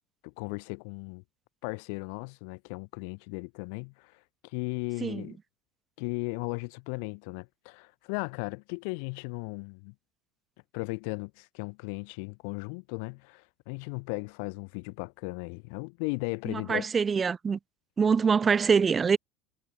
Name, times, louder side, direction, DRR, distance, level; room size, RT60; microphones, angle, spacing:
voice 1, 0.2-1.2 1.6-5.4 6.0-9.9 10.7-16.9, left 37 dB, 75° left, 5.9 m, -36 dB
voice 2, 16.5-17.6 18.0-19.2, right 6 dB, 25° right, 1.1 m, -24 dB
supercardioid pair, 125°, 0 cm